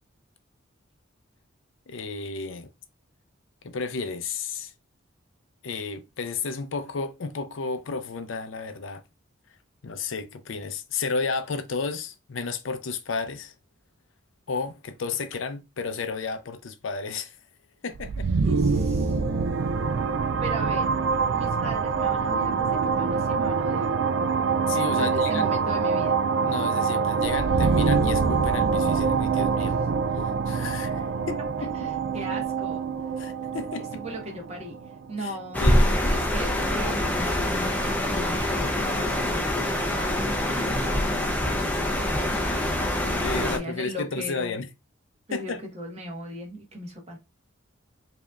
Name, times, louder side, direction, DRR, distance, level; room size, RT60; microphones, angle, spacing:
voice 1, 1.9-2.7 3.6-4.7 5.6-9.0 9.8-13.5 14.5-17.4 17.8-18.3 24.7-25.5 26.4-29.8 30.5-31.9 33.2-33.9 35.2-35.3 35.6-35.9 43.0-44.7 45.3-45.6, left 4 dB, 70° left, 0.5 m, -32 dB
sound 1, 17.9-35.6, right 5 dB, 65° right, 0.4 m, -25 dB
voice 2, 18.4-19.2 20.4-20.9 21.3-23.9 24.9-26.2 31.8-32.8 33.9-34.8 35.1-35.7 36.1-37.8 38.2-42.4 43.4-44.6 45.3-47.2, equal, 30° right, 1.2 m, -38 dB
sound 2, 35.5-43.6, left 1 dB, 10° left, 0.6 m, -25 dB
5.0 x 2.8 x 2.4 m
head